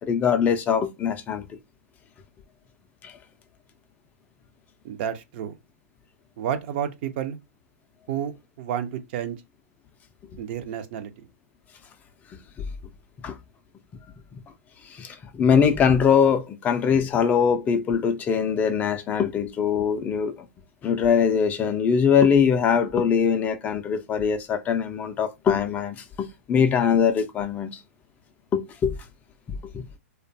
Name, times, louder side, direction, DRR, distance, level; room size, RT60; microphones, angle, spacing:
voice 1, 0.0-1.5 3.0-3.1 12.3-12.4 13.2-13.4 14.8-20.4 20.8-27.8 28.5-29.0 29.7-29.8, left 7 dB, 20° left, 0.3 m, -22 dB
voice 2, 4.8-5.5 6.4-7.4 8.1-9.4 10.4-11.1, right 9 dB, 45° right, 0.4 m, -30 dB
2.4 x 2.2 x 2.5 m
hypercardioid pair, 120°, 8 cm